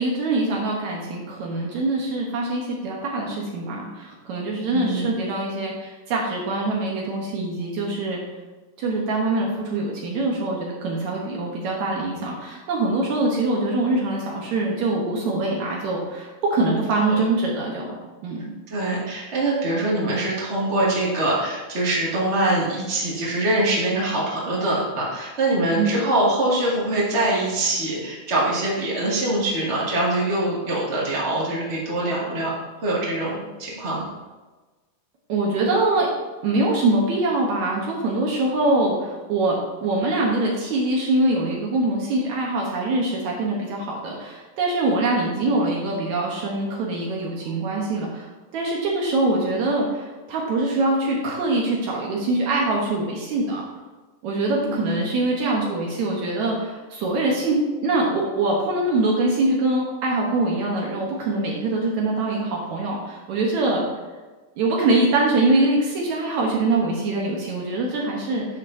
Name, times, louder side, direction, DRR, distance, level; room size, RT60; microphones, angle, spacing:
voice 1, 0.0-8.2 8.8-18.0 18.2-18.5 25.8-26.0 35.3-36.1 36.4-53.6 54.2-63.9 64.6-68.5, right 2 dB, 70° right, -2 dB, 2.3 m, -23 dB
voice 2, 4.7-5.1 17.1-17.2 18.7-32.5 32.8-34.1 54.6-55.0, right 1 dB, 25° right, -5 dB, 2.1 m, -23 dB
11.0 x 7.2 x 2.7 m, 1.3 s
omnidirectional pair, 3.6 m